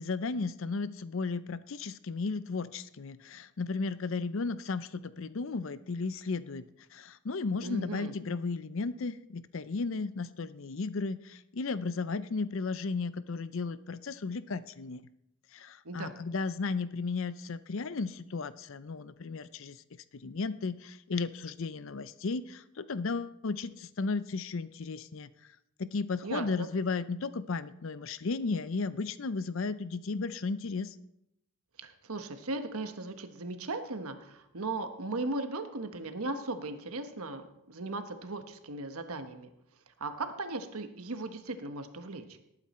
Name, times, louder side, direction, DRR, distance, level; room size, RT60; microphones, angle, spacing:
voice 1, 0.0-6.6 6.9-15.0 15.5-19.8 20.1-25.3 25.8-30.9, left 4 dB, 60° left, 15 dB, 0.5 m, -34 dB
voice 2, 7.6-8.1 15.8-16.1 26.2-26.7 31.8-39.5 40.0-42.2, right 2 dB, 80° right, 8 dB, 1.2 m, -37 dB
18.5 x 9.0 x 4.3 m, 0.84 s
head